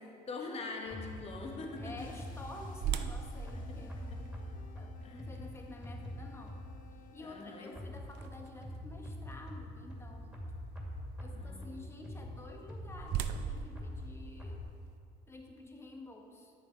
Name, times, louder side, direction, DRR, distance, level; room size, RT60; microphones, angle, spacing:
voice 1, 0.3-2.2 3.5-3.6 5.0-5.2 7.2-7.7 11.3-11.9, left 3 dB, 35° left, 1 dB, 1.4 m, -43 dB
sound 1, 0.8-7.8, left 7 dB, 55° left, 0.9 m, -58 dB
sound 2, 0.9-7.0 7.8-14.6, left 1 dB, 5° right, 2.3 m, -44 dB
voice 2, 1.8-6.6 7.1-10.4 11.2-14.6 15.3-16.5, left 2 dB, 15° left, 2 dB, 1.3 m, -50 dB
sound 3, 2.8-8.8 9.3-9.4 10.0-10.2 12.3-15.0, right 9 dB, 85° right, 0.5 m, -41 dB
10.0 x 8.5 x 4.4 m, 2.4 s
cardioid pair, 110°, 17 cm